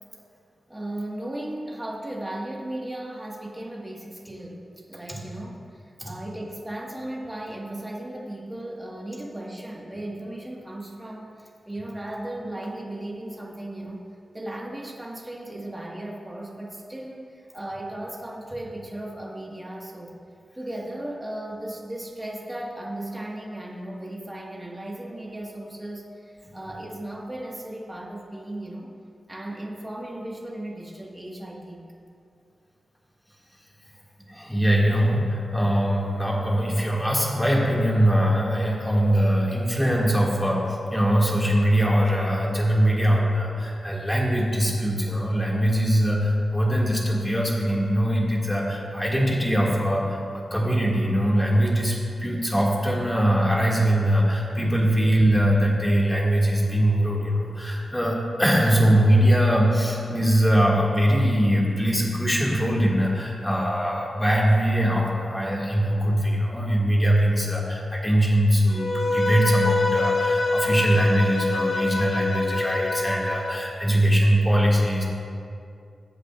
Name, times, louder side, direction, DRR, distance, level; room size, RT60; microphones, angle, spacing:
voice 1, 0.7-14.0 14.3-20.2 20.5-28.9 29.3-31.9, right 1 dB, 15° right, -2 dB, 1.5 m, -36 dB
voice 2, 34.3-75.0, equal, 5° left, -4 dB, 2.0 m, -22 dB
Bowed string instrument, 68.7-73.7, left 2 dB, 50° left, 1.4 m, -25 dB
20.5 x 8.0 x 2.4 m, 2.4 s
wide cardioid pair, 125°, 0 cm